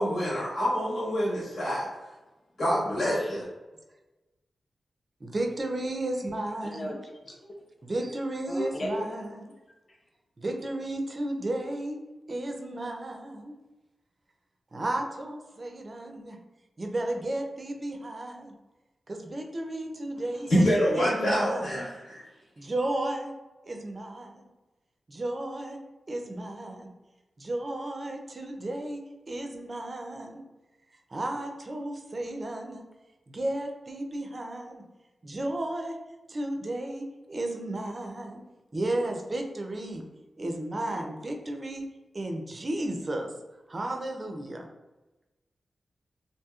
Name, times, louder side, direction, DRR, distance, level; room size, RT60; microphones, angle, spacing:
voice 1, 0.0-1.8 2.6-3.4 20.5-22.2, equal, 85° left, -9 dB, 1.4 m, -26 dB
voice 2, 5.2-7.0 7.8-9.5 10.4-12.0 12.3-13.6 14.7-16.4 16.8-18.6 19.1-20.6 20.9-21.8 22.6-23.3 23.6-24.5 25.1-25.8 26.1-26.9 27.4-29.0 29.3-30.4 31.1-32.8 33.3-34.8 35.2-36.0 36.3-38.4 38.7-40.0 40.4-41.8 42.1-43.3 43.7-44.7, right 1 dB, 35° right, 3 dB, 0.4 m, -33 dB
voice 3, 6.6-7.6 8.5-9.3 9.9-10.0, equal, 45° left, -1 dB, 0.6 m, -35 dB
2.8 x 2.6 x 2.3 m, 1.1 s
wide cardioid pair, 110°, 0 cm